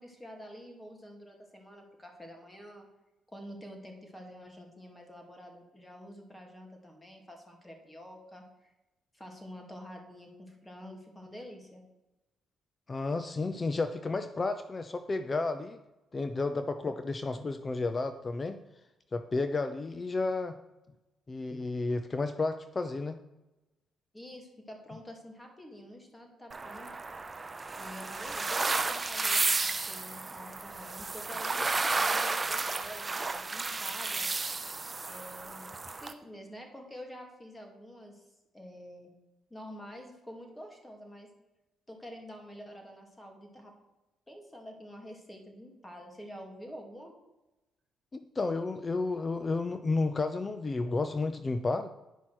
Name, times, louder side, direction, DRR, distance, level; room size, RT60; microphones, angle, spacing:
voice 1, 0.0-2.9 3.3-8.7 9.1-11.8 24.1-26.9 27.8-34.3 35.1-38.3 38.5-39.1 39.5-41.3 41.9-43.7 44.3-47.1, equal, 10° left, 2 dB, 2.5 m, -48 dB
voice 2, 12.9-15.8 16.1-18.6 19.1-20.6 21.3-23.2 48.1-51.9, left 3 dB, 30° left, 9 dB, 0.6 m, -32 dB
sound 1, 26.5-36.1, right 3 dB, 25° right, 0.7 m, -32 dB
10.0 x 5.7 x 6.3 m, 1.0 s
cardioid pair, 90°, 0 cm